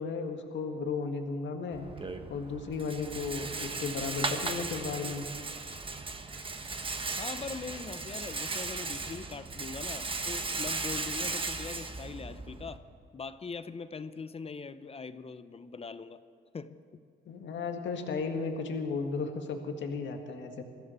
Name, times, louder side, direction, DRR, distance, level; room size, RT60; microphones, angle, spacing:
voice 1, 0.0-1.8 2.3-5.3 17.3-20.6, left 4 dB, 70° left, 4 dB, 1.8 m, -34 dB
Rattle, 1.7-12.8, right 3 dB, 25° right, 1.2 m, -37 dB
voice 2, 7.1-12.8 13.1-16.2 16.5-16.7, left 5 dB, 30° left, 12 dB, 0.7 m, -41 dB
21.5 x 15.0 x 4.5 m, 2.6 s
cardioid pair, 90°, 20 cm